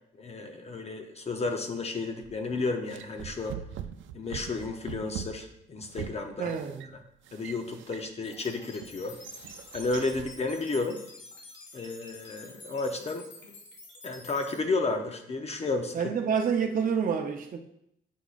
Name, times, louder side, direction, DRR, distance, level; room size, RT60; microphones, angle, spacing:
voice 1, 0.2-3.6 4.1-6.5 7.3-9.2 9.7-11.0 11.7-13.3 14.0-16.0, left 3 dB, 35° left, 5 dB, 0.7 m, -32 dB
sound 1, 2.2-2.5 2.9-8.3 8.8-10.4, right 9 dB, 90° right, 0.4 m, -43 dB
voice 2, 6.4-6.9 15.9-17.6, right 6 dB, 45° right, 2 dB, 0.7 m, -28 dB
sound 2, 8.2-14.6, left 2 dB, 75° left, 1.6 m, -49 dB
8.2 x 5.9 x 2.4 m, 0.75 s
cardioid pair, 115°, 19 cm